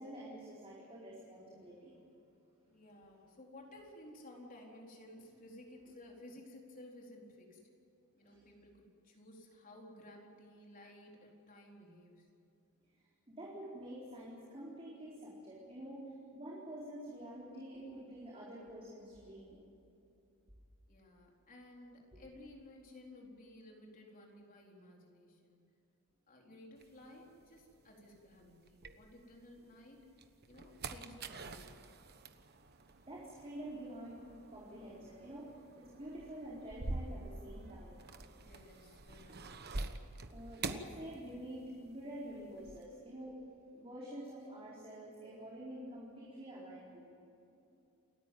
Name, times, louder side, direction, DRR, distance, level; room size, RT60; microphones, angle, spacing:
voice 1, 0.0-2.0 8.2-8.4 13.3-16.0 16.3-19.6 22.1-22.2 33.1-35.5 35.8-38.0 40.3-43.3 43.7-47.1, right 1 dB, 25° right, -5 dB, 4.4 m, -48 dB
voice 2, 2.7-7.6 8.1-12.3 20.9-25.6 26.3-30.1 30.5-31.7 38.4-39.6, left 1 dB, 40° left, -1 dB, 4.2 m, -56 dB
sound 1, 26.8-29.6 30.0-41.8 42.0-42.9, right 3 dB, 50° right, 1.2 m, -46 dB
29.0 x 14.0 x 9.3 m, 2.7 s
head